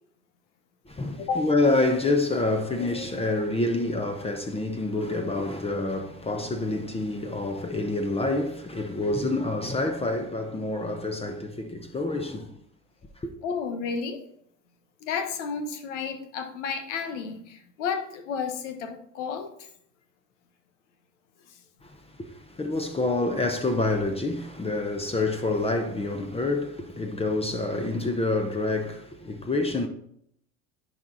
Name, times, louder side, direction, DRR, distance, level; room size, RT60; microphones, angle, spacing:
voice 1, 0.9-12.6 13.2-13.3 21.8-29.9, left 2 dB, 15° left, 1.0 m, -27 dB
voice 2, 13.4-14.2 15.0-19.7 21.5-21.6, left 5 dB, 75° left, 1.3 m, -32 dB
10.5 x 4.8 x 4.0 m
hypercardioid pair, 80°, 36 cm